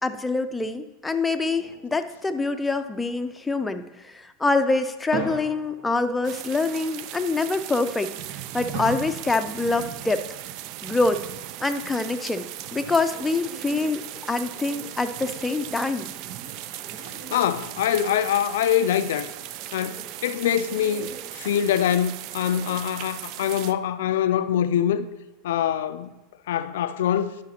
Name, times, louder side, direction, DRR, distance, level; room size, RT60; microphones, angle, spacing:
voice 1, 0.0-10.3 10.8-11.2 11.6-16.1, left 3 dB, 10° left, 0.5 m, -25 dB
sound 1, 1.5-3.1 5.1-6.5 8.7-9.8, right 2 dB, 70° right, 2.3 m, -36 dB
sound 2, 6.2-23.7, right 13 dB, 55° right, 0.3 m, -38 dB
Bird, 13.1-22.8, right 2 dB, 15° right, 2.5 m, -47 dB
voice 2, 17.3-19.3 19.7-25.1 25.4-26.1 26.5-27.3, left 10 dB, 75° left, 0.3 m, -24 dB
11.0 x 5.8 x 2.9 m
hypercardioid pair, 100°, 0 cm